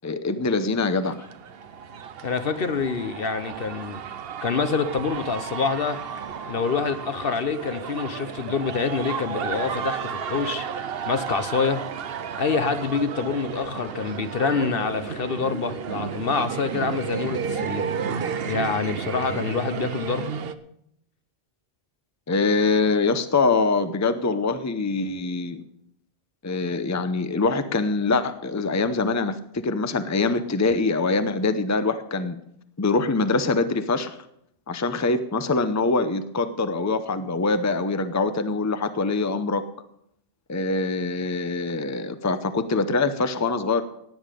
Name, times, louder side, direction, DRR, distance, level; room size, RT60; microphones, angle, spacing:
voice 1, 0.0-1.2 22.3-25.6 26.4-32.4 32.8-34.2 34.7-39.6 40.5-43.8, left 3 dB, 20° left, 10 dB, 0.7 m, -24 dB
sound 1, 1.0-20.5, right 7 dB, 65° right, 1.0 m, -32 dB
voice 2, 2.2-4.0 4.4-6.0 6.5-10.7 11.1-11.8 12.4-17.9 18.5-20.3, left 5 dB, 60° left, 10 dB, 1.2 m, -26 dB
17.5 x 9.6 x 5.2 m, 0.73 s
omnidirectional pair, 1.1 m